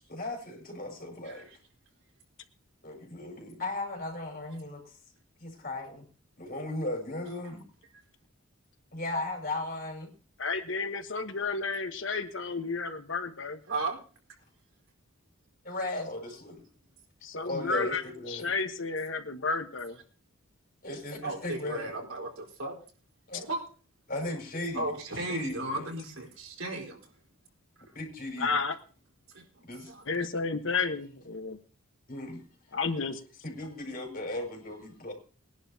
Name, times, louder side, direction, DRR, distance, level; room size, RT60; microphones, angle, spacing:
voice 1, 0.1-1.5 2.8-5.0 5.4-6.1 6.4-7.6 8.9-10.1 15.6-16.6 17.4-18.5 20.8-21.9 23.3-23.5 24.1-24.8 25.1-25.9 27.9-28.6 29.6-29.9 32.1-32.4 33.4-35.1, left 2 dB, 45° left, 1 dB, 5.7 m, -36 dB
voice 2, 1.2-1.6 13.7-14.0 21.2-22.8 23.4-23.6 24.7-27.0 29.3-30.0, right 2 dB, 80° right, 0 dB, 4.5 m, -35 dB
voice 3, 10.4-13.6 17.2-18.0 18.3-20.0 28.4-28.7 30.1-31.6 32.7-33.2, left 4 dB, 65° left, 7 dB, 1.3 m, -31 dB
22.0 x 11.0 x 2.8 m, 0.38 s
head